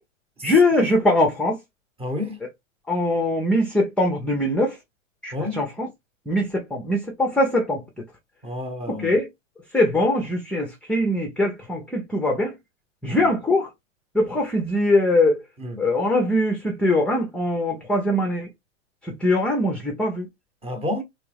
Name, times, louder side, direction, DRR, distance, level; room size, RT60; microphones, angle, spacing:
voice 1, 0.4-1.6 2.9-4.8 5.2-5.9 6.3-7.8 8.9-9.3 9.7-12.5 13.0-13.7 14.1-15.4 15.8-18.5 19.0-20.3, left 1 dB, 5° left, 0.6 m, -22 dB
voice 2, 2.0-2.4 5.3-5.6 8.4-9.2 13.1-13.3 15.6-15.8 20.6-21.0, left 1 dB, 15° right, 1.0 m, -30 dB
3.5 x 3.1 x 3.3 m
hypercardioid pair, 110°, 39 cm